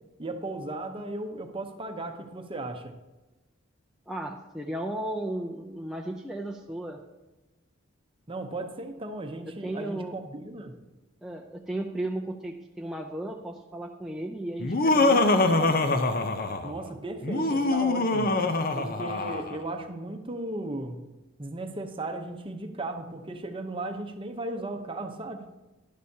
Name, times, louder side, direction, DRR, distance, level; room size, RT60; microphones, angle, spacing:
voice 1, 0.2-2.9 8.3-10.7 16.6-18.4 18.7-21.0 21.4-25.4, right 2 dB, 25° right, 5 dB, 0.8 m, -36 dB
voice 2, 4.1-7.0 9.4-10.1 11.2-15.8, right 1 dB, ahead, -1 dB, 0.5 m, -35 dB
Laughter, 14.6-16.8 17.2-19.6, left 2 dB, 45° left, 0.7 m, -24 dB
11.0 x 11.0 x 2.8 m, 1.1 s
head